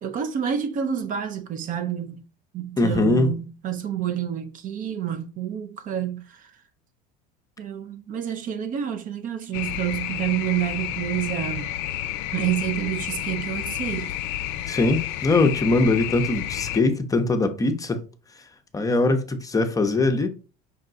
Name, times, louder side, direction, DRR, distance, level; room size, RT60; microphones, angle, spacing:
voice 1, 0.0-2.3 2.5-6.5 7.6-11.7 12.3-14.2, right 9 dB, 40° right, 0.5 m, -28 dB
voice 2, 2.8-3.3 14.7-18.0 18.7-20.3, left 2 dB, 15° left, 0.6 m, -21 dB
sound 1, 9.5-16.8, left 12 dB, 70° left, 0.5 m, -30 dB
5.4 x 2.2 x 3.8 m
supercardioid pair, 100°, 20 cm